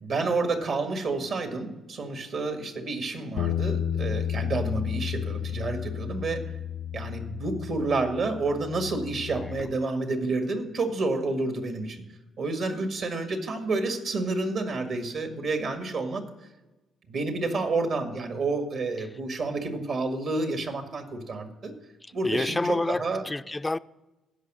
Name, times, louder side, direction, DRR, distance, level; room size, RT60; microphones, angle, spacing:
voice 1, 0.0-6.4 6.9-12.0 12.4-16.2 17.1-21.7 22.1-23.2, right 3 dB, 65° right, 1.8 m, -29 dB
Bass guitar, 3.4-9.6, left 9 dB, 85° left, 0.4 m, -32 dB
voice 2, 9.3-9.7 22.2-23.8, left 2 dB, 15° left, 0.3 m, -29 dB
15.5 x 5.6 x 6.2 m
cardioid pair, 90°, 0 cm